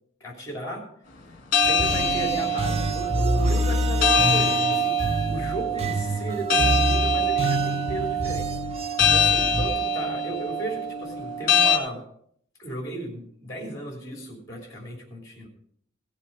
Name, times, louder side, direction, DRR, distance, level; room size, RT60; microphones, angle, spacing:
voice 1, 0.2-0.9 1.6-4.9 5.3-8.5 9.1-12.0 12.6-15.5, right 1 dB, 15° left, 0 dB, 3.3 m, -35 dB
sound 1, 1.5-11.8, left 1 dB, 45° left, 1.6 m, -24 dB
sound 2, 1.6-9.7, right 1 dB, 30° right, 0.8 m, -27 dB
17.0 x 7.4 x 4.7 m, 0.66 s
head